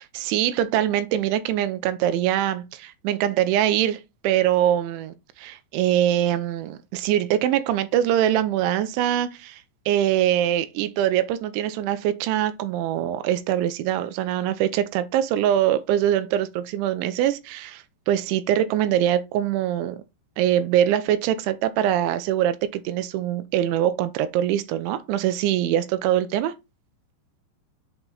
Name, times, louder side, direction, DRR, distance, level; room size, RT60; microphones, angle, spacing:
voice 1, 0.1-20.0 20.4-26.5, right 11 dB, 85° right, 3.0 m, -23 dB
7.9 x 4.3 x 3.9 m
omnidirectional pair, 5.4 m